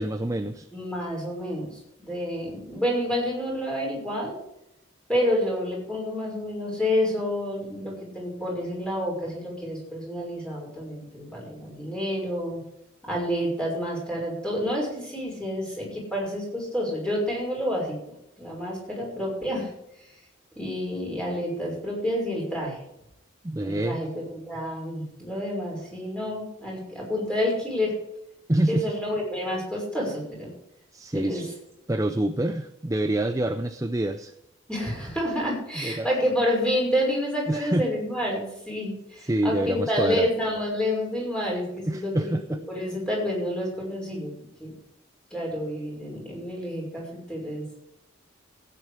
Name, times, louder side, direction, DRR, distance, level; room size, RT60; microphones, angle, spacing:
voice 1, 0.0-0.7 23.4-24.0 28.5-28.9 30.9-31.6 31.9-34.3 35.8-36.1 37.5-37.9 39.3-40.3 41.9-42.6, right 1 dB, 15° right, 9 dB, 0.5 m, -26 dB
voice 2, 0.7-4.3 5.1-12.6 13.1-18.0 18.4-19.7 20.6-22.8 23.6-27.9 28.7-30.5 31.1-31.4 34.7-42.3 42.7-44.3 44.6-44.7 45.3-47.7, equal, 5° left, -3 dB, 5.9 m, -29 dB
15.5 x 9.6 x 5.1 m, 0.81 s
head